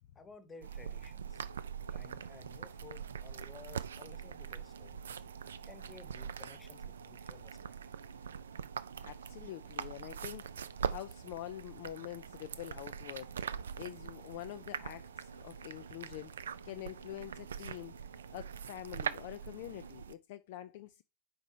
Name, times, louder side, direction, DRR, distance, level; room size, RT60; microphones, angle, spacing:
voice 1, 0.1-1.4 1.9-5.2 5.6-7.6, left 4 dB, 20° left, 1.0 m, -55 dB
sound 1, 0.6-20.1, right 7 dB, 65° right, 0.3 m, -43 dB
sound 2, 1.2-19.9, right 1 dB, 85° right, 0.9 m, -59 dB
voice 2, 9.0-10.5 10.9-13.3 13.7-18.0 18.3-21.0, left 14 dB, 50° left, 0.3 m, -46 dB
4.9 x 4.2 x 5.3 m
figure-of-eight pair, 90°, 0 cm